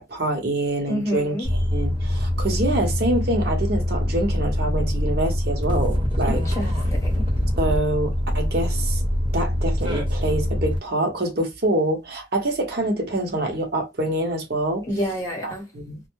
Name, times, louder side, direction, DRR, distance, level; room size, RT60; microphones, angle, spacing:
voice 1, 0.0-1.3 1.7-6.4 7.6-9.0 9.3-14.9 15.4-16.0, right 1 dB, 55° right, 0.8 m, -25 dB
voice 2, 0.9-1.5 6.2-7.3 14.8-15.7, equal, 15° left, 1.0 m, -29 dB
sound 1, 1.4-10.8, left 1 dB, 25° right, 0.9 m, -24 dB
2.2 x 2.0 x 3.0 m
head